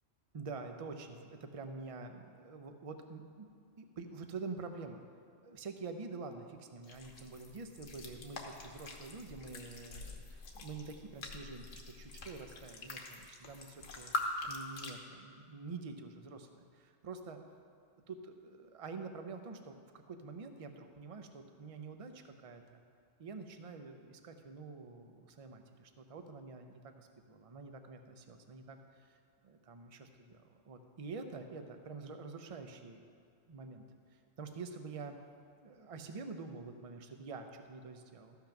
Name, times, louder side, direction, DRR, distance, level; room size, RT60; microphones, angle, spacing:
voice 1, 0.3-3.5 3.8-5.0 5.4-14.1 14.5-17.4 18.1-22.8 23.2-29.2 29.4-33.1 33.5-33.8 34.1-35.2 35.6-38.4, right 4 dB, 35° right, 6 dB, 0.6 m, -47 dB
sound 1, 6.8-14.9, left 2 dB, 85° left, 1.5 m, -44 dB
13.5 x 5.7 x 5.8 m, 2.4 s
omnidirectional pair, 1.3 m